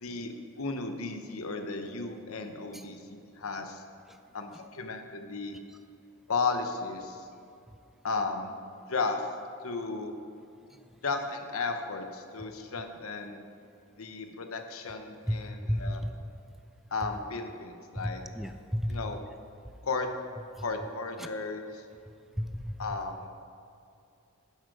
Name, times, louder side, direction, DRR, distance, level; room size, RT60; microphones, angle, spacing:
voice 1, 0.0-3.8 4.3-5.6 6.3-7.3 8.0-8.5 8.9-9.3 9.6-10.1 11.0-13.4 14.0-16.0 16.9-18.2 18.9-19.2 19.8-20.1 20.6-21.8 22.8-23.2, left 4 dB, 90° left, 6 dB, 0.9 m, -34 dB
voice 2, 15.7-16.1 18.4-19.0 22.4-22.7, equal, ahead, 8 dB, 0.4 m, -31 dB
10.0 x 7.7 x 4.9 m, 2.6 s
head